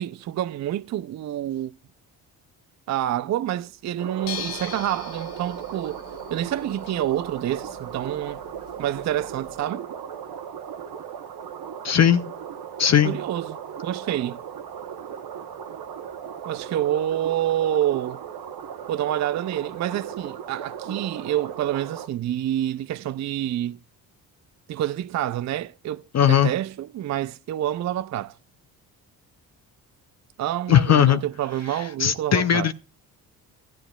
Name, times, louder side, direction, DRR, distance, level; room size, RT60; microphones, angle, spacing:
voice 1, 0.0-1.7 2.9-6.0 6.3-8.4 8.8-9.9 13.0-13.6 13.8-14.4 16.4-18.2 18.9-23.8 24.7-28.3 30.4-32.7, right 12 dB, 40° right, 0.5 m, -27 dB
sound 1, 4.0-22.1, right 8 dB, 60° right, 1.0 m, -37 dB
sound 2, 4.2-9.6, left 8 dB, 75° left, 1.0 m, -42 dB
voice 2, 11.8-12.3 12.8-13.2 26.1-26.5 30.7-31.2 32.0-32.7, left 9 dB, 40° left, 0.6 m, -18 dB
14.0 x 11.5 x 2.3 m
supercardioid pair, 55°, 43 cm